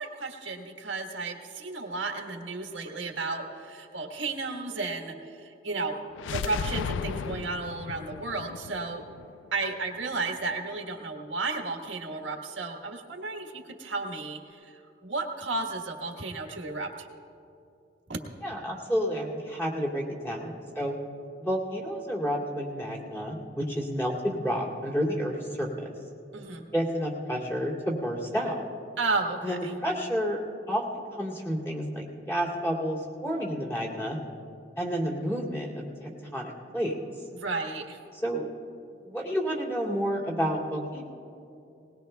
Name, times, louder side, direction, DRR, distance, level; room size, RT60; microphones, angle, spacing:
voice 1, 0.0-6.0 6.3-9.0 9.5-17.1 18.1-18.2 26.3-26.6 29.0-29.7 37.3-38.0, right 3 dB, 80° right, 2 dB, 1.5 m, -33 dB
sound 1, 6.1-10.0, left 6 dB, 80° left, 0.3 m, -35 dB
voice 2, 18.4-21.0 21.4-25.9 26.7-28.6 29.4-30.4 30.7-34.2 34.8-37.0 38.2-38.5 39.0-41.0, equal, 15° left, -5 dB, 2.6 m, -30 dB
20.5 x 20.0 x 2.3 m, 2.7 s
head